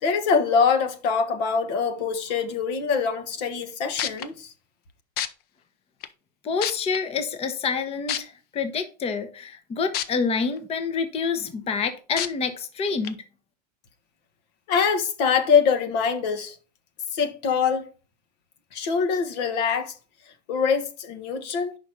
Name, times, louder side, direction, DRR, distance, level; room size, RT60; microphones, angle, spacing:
voice 1, 0.0-4.5 14.7-16.6 17.1-17.9 18.7-19.9 20.5-21.8, left 6 dB, 70° left, 1.2 m, -24 dB
sound 1, 3.6-3.7 4.0-4.3 5.2-5.3 6.0-6.1 6.6-7.0 8.1-8.2 9.9-10.0 10.6-10.7 12.2-12.3 13.0-13.1, left 10 dB, 50° left, 0.7 m, -27 dB
voice 2, 6.4-13.2, left 5 dB, 30° left, 0.9 m, -27 dB
5.2 x 5.1 x 5.9 m
hypercardioid pair, 105°, 21 cm